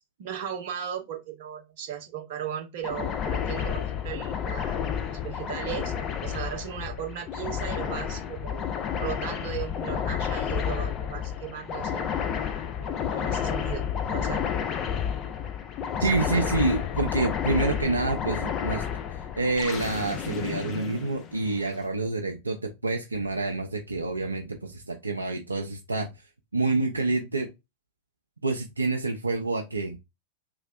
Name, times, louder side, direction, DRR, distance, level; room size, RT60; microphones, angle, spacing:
voice 1, 0.2-4.8 5.2-5.9 6.2-8.6 9.0-12.1 12.8-14.4 16.0-16.6, right 9 dB, 50° right, 0.7 m, -36 dB
sound 1, 2.8-21.7, left 8 dB, 30° left, 0.3 m, -31 dB
voice 2, 16.0-18.8 19.4-26.1 26.5-27.5 28.4-30.0, right 3 dB, 80° right, 0.3 m, -27 dB
3.0 x 2.5 x 2.3 m
figure-of-eight pair, 90°, 0 cm